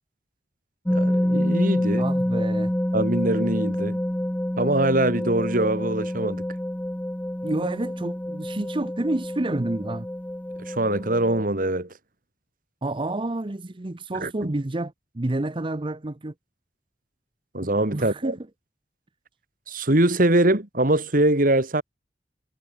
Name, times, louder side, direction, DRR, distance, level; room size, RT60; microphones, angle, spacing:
sound 1, 0.9-11.4, equal, 10° left, 0.7 m, -27 dB
voice 1, 0.9-2.1 2.9-4.0 4.6-6.5 10.6-11.9 14.2-14.5 17.5-18.3 19.7-21.8, right 1 dB, 50° right, 2.8 m, -23 dB
voice 2, 2.0-2.7 7.4-10.1 12.8-16.3 17.9-18.4, right 2 dB, 30° right, 0.8 m, -29 dB
head